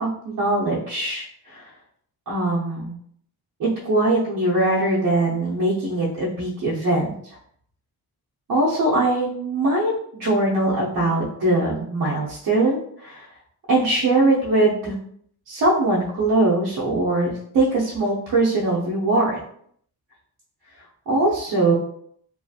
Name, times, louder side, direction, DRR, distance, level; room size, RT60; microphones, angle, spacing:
voice 1, 0.0-1.6 2.3-3.0 3.6-7.1 8.5-13.3 13.7-14.9 15.5-19.4 21.1-21.7, right 2 dB, 55° right, -6 dB, 0.7 m, -21 dB
2.6 x 2.3 x 2.6 m, 0.64 s
wide cardioid pair, 180°, 39 cm